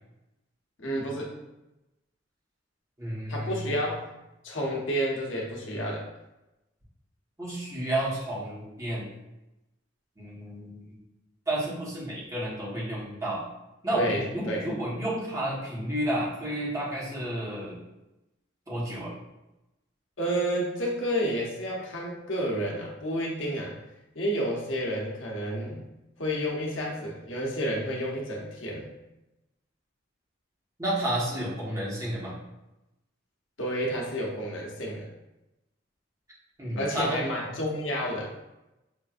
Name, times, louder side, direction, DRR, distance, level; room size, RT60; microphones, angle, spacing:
voice 1, 0.8-1.4 3.3-4.0 4.4-6.0 13.9-14.6 20.2-23.7 24.1-25.8 26.2-28.9 33.6-35.0 36.7-38.3, equal, 80° left, -2 dB, 0.9 m, -30 dB
voice 2, 3.0-3.7 7.4-9.1 10.2-10.9 11.5-13.4 13.8-17.8 18.7-19.1 30.8-32.4 36.6-37.2, right 1 dB, 15° right, -6 dB, 1.2 m, -31 dB
5.9 x 2.5 x 2.4 m, 0.96 s
head